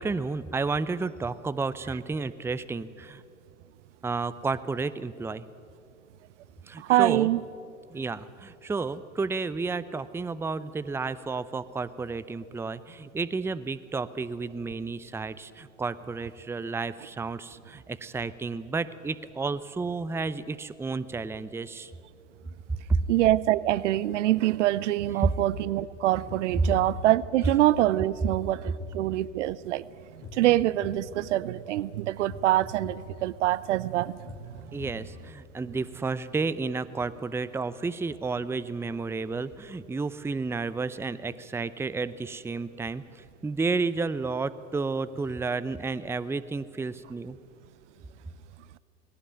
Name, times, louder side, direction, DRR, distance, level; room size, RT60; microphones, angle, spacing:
voice 1, 0.0-3.2 4.0-5.5 6.7-7.3 7.9-21.9 22.9-23.1 25.2-25.3 26.6-26.7 34.7-47.4, right 4 dB, 5° right, 16 dB, 0.6 m, -31 dB
voice 2, 6.9-7.4 23.1-29.8 30.4-34.2, right 14 dB, 70° right, 20 dB, 0.7 m, -25 dB
sound 1, 26.3-35.7, left 5 dB, 35° left, 3.0 m, -47 dB
19.5 x 17.5 x 9.1 m, 2.4 s
hypercardioid pair, 85°, 37 cm